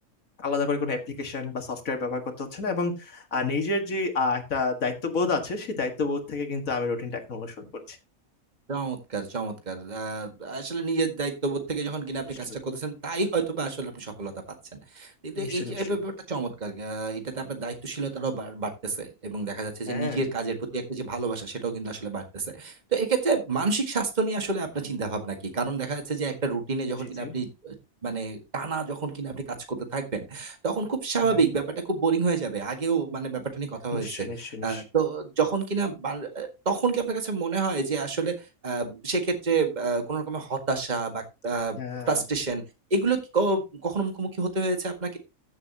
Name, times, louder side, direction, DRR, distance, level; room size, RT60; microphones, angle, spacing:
voice 1, 0.4-8.0 12.5-12.6 15.3-15.9 19.9-20.2 27.0-27.4 31.2-31.4 33.9-34.8 41.8-42.2, left 3 dB, 80° left, 5 dB, 2.2 m, -30 dB
voice 2, 8.7-14.3 14.7-27.8 28.0-34.3 34.6-38.3 38.6-41.8 42.1-42.6 42.9-45.2, right 4 dB, 35° right, 5 dB, 1.9 m, -29 dB
14.5 x 7.4 x 2.9 m, 0.26 s
omnidirectional pair, 1.4 m